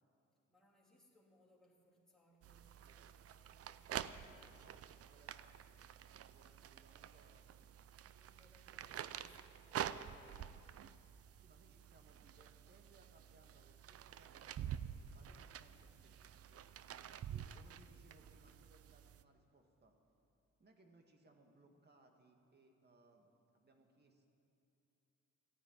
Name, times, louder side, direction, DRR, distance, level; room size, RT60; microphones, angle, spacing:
voice 1, 0.5-4.0 8.0-10.1, equal, ahead, -4 dB, 3.2 m, -71 dB
sound 1, 2.4-19.2, right 10 dB, 50° right, 0.6 m, -49 dB
voice 2, 4.5-5.9 6.2-7.7 11.4-16.7 17.2-20.0 20.6-24.3, right 2 dB, 35° right, 3 dB, 2.0 m, -68 dB
15.0 x 9.8 x 9.3 m, 2.8 s
cardioid pair, 90°, 30 cm